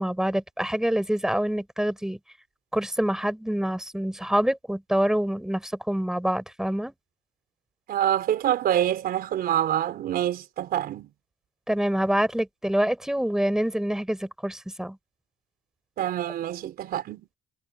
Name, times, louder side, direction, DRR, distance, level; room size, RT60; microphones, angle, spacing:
voice 1, 0.0-2.2 2.7-6.9 11.7-15.0, equal, 5° right, 5.6 m, -26 dB
voice 2, 7.9-11.1 16.0-17.3, right 11 dB, 65° right, 4.2 m, -26 dB
cardioid pair, 110°, 17 cm